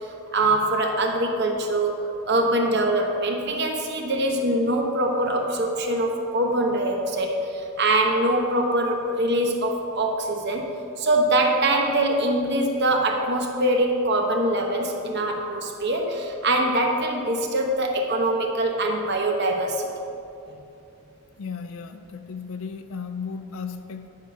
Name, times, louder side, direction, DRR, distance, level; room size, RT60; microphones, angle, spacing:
voice 1, 0.0-10.7 11.0-19.9, right 1 dB, 50° right, 1 dB, 0.9 m, -23 dB
voice 2, 21.4-24.1, left 5 dB, 75° left, 9 dB, 0.4 m, -35 dB
10.0 x 5.0 x 5.7 m, 2.8 s
head